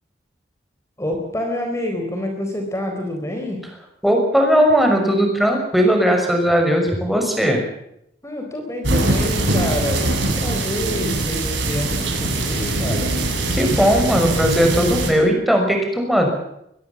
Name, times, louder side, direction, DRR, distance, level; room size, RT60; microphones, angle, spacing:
voice 1, 1.0-3.6 8.2-10.1 10.4-13.1, left 1 dB, 15° left, 3 dB, 4.1 m, -27 dB
voice 2, 4.0-7.6 13.5-16.3, equal, ahead, 2 dB, 6.1 m, -17 dB
sound 1, 8.8-15.1, right 2 dB, 85° right, 7.4 m, -22 dB
24.0 x 21.0 x 7.3 m, 0.78 s
head